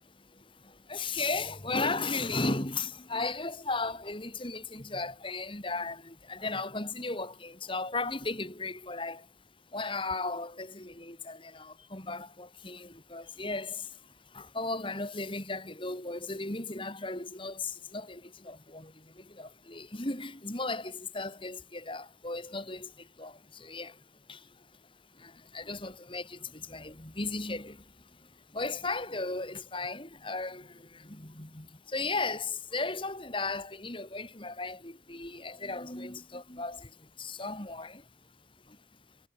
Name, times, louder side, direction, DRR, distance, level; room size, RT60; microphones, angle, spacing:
voice 1, 0.0-9.3 9.7-24.7 25.1-38.1 38.6-38.8, left 3 dB, 25° left, 3.3 m, -36 dB
head